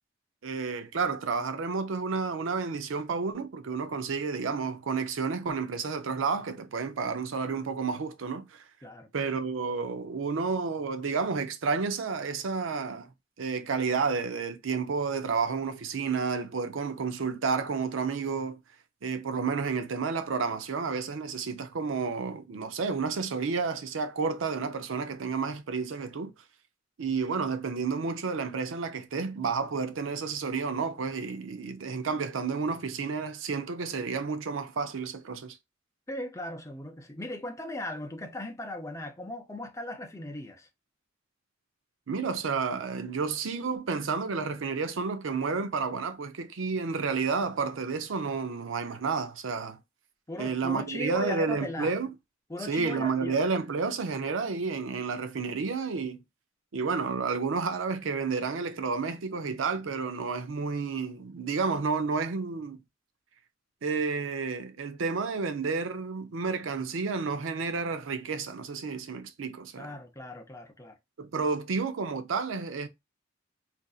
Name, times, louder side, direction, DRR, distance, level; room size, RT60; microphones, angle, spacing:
voice 1, 0.4-8.6 9.1-13.1 13.4-18.6 19.0-26.3 27.0-35.6 42.1-49.8 50.4-52.1 52.7-56.2 56.7-62.8 63.8-70.0 71.2-72.9, right 5 dB, 80° right, 0.5 m, -31 dB
voice 2, 36.1-40.7 50.3-51.9 52.5-53.4 69.8-71.0, left 1 dB, 15° left, 0.6 m, -38 dB
3.9 x 2.5 x 2.3 m
head